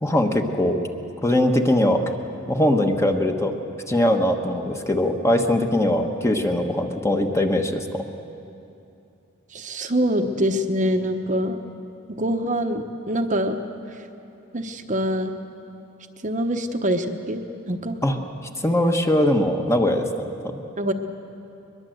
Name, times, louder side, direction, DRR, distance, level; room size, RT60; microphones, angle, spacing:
voice 1, 0.0-0.8 1.2-2.0 2.5-3.5 3.9-8.0 18.0-18.2 18.6-20.1 20.4-20.6, left 1 dB, 15° left, 4 dB, 1.2 m, -21 dB
voice 2, 9.5-11.6 12.1-13.6 14.5-15.4 16.2-17.4 17.7-18.0 20.8-20.9, equal, 35° right, 5 dB, 1.0 m, -24 dB
22.0 x 21.5 x 7.9 m, 2.7 s
head